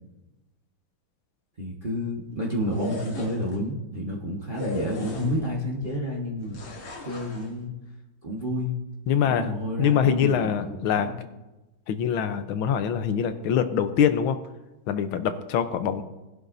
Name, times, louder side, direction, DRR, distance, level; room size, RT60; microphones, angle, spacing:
voice 1, 1.6-6.6 7.0-7.7 8.2-8.7 9.2-11.1, equal, 30° right, -4 dB, 1.4 m, -30 dB
sound 1, 2.6-3.6 4.5-5.6 6.5-7.5, left 2 dB, 70° left, 2.4 m, -36 dB
voice 2, 9.1-9.5 9.8-11.1 11.9-14.4 14.9-16.0, left 8 dB, 85° left, 9 dB, 1.6 m, -24 dB
19.0 x 11.0 x 2.7 m, 1.0 s
omnidirectional pair, 2.2 m